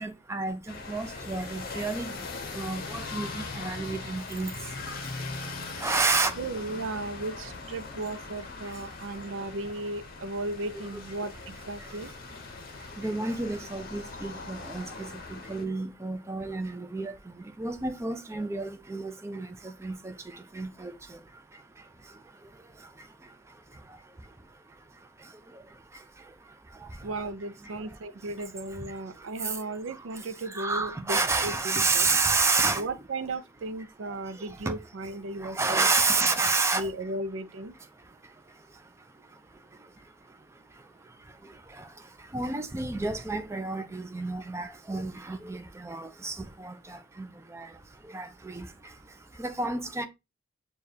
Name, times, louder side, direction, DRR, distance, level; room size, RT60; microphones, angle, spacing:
voice 1, 0.0-2.3 2.5-6.4 8.6-8.8 10.7-10.9 11.8-12.2 12.8-27.3 27.6-28.3 28.7-32.9 34.1-34.8 35.3-36.9 37.8-50.0, right 3 dB, 15° right, 0.4 m, -32 dB
sound 1, 0.7-15.7, left 3 dB, 50° left, 0.7 m, -40 dB
voice 2, 6.4-12.1 27.0-32.1 32.8-35.9 36.7-37.7, right 2 dB, 75° right, 0.5 m, -35 dB
6.6 x 2.3 x 2.7 m
head